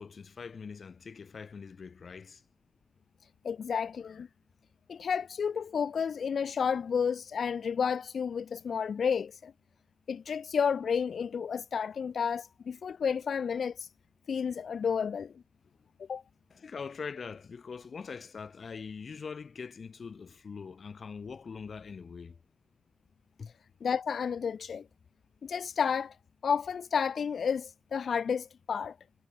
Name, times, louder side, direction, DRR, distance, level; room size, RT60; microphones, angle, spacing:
voice 1, 0.0-2.4 16.5-22.4 23.4-23.5, left 5 dB, 65° left, 4.8 m, -43 dB
voice 2, 3.4-4.3 4.9-9.5 10.1-13.9 14.3-15.3 16.1-16.2 23.8-24.8 25.4-26.2 26.4-29.0, left 6 dB, 85° left, 2.7 m, -31 dB
wide cardioid pair, 95°, 0 cm